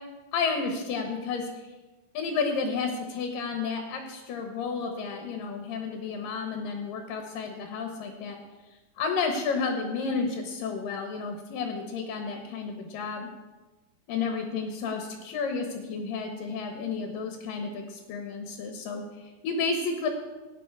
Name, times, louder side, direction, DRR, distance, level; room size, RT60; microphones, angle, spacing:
voice 1, 0.3-1.5 2.1-8.4 9.0-13.3 14.1-20.1, left 4 dB, 65° left, 4 dB, 2.6 m, -31 dB
16.0 x 9.3 x 4.8 m, 1.2 s
omnidirectional pair, 4.6 m